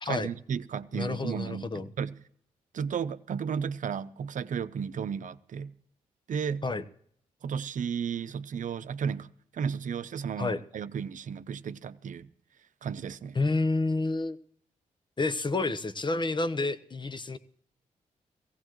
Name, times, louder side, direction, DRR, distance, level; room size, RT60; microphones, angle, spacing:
voice 1, 0.0-2.2 2.7-5.7 6.3-6.6 7.4-9.3 9.5-12.3 12.8-13.4, right 7 dB, 65° right, 0.7 m, -33 dB
voice 2, 0.9-1.9 6.6-6.8 10.4-10.6 13.3-14.4 15.2-17.4, left 3 dB, 35° left, 1.1 m, -29 dB
17.5 x 16.0 x 3.1 m
supercardioid pair, 50°, 14 cm